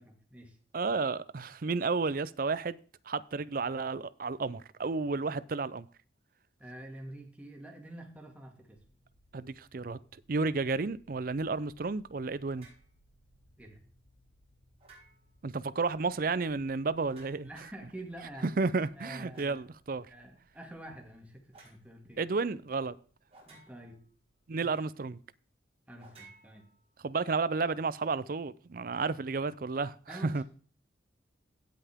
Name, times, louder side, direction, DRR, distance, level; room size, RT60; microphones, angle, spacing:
voice 1, 0.0-0.6 6.6-8.8 13.6-13.8 17.4-18.5 19.0-19.7 20.1-22.2 23.5-24.0 24.6-24.7 25.9-26.7 30.1-30.4, right 1 dB, 5° right, 2.2 m, -47 dB
voice 2, 0.7-2.8 3.1-5.9 9.3-10.0 10.3-12.7 15.4-17.5 18.4-20.1 22.2-22.9 24.5-25.2 27.0-30.4, right 4 dB, 50° right, 0.5 m, -32 dB
sound 1, 8.7-24.6, equal, 75° left, 2.2 m, -68 dB
sound 2, 12.5-12.9 14.8-15.4 17.0-17.7 19.3-19.7 21.5-21.8 23.3-24.1 26.0-27.1, right 3 dB, 30° right, 5.2 m, -57 dB
16.5 x 5.7 x 3.6 m
head